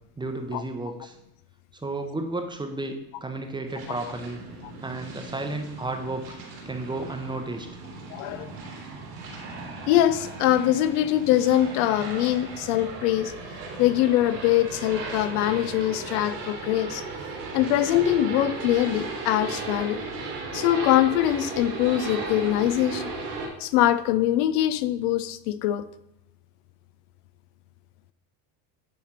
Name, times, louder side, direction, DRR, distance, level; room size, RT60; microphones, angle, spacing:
voice 1, 0.2-1.2 1.8-4.4 4.8-6.4 6.7-7.8, right 2 dB, 10° right, 0.7 m, -33 dB
sound 1, 3.7-23.5, right 3 dB, 85° right, 2.7 m, -36 dB
voice 2, 8.1-8.5 9.9-13.3 13.8-17.0 17.5-20.0 20.5-23.1 23.6-25.9, left 13 dB, 75° left, 0.6 m, -23 dB
9.8 x 3.4 x 4.3 m
supercardioid pair, 115°, 47 cm